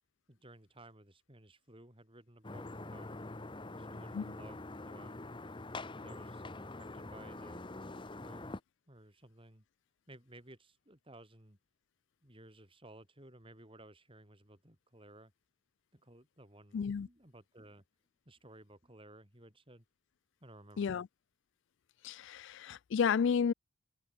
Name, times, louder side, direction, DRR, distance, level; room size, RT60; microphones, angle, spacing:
voice 1, 0.3-3.1 3.8-5.2 6.0-7.6 8.2-8.5 8.9-9.6 10.1-11.6 12.2-15.3 15.9-17.8 18.3-19.8 20.4-21.0, right 1 dB, 25° right, 4.4 m, -57 dB
sound 1, 2.4-8.6, left 2 dB, 20° left, 1.0 m, -45 dB
voice 2, 16.7-17.1 20.8-21.1 22.0-23.5, left 6 dB, 55° left, 0.3 m, -32 dB
head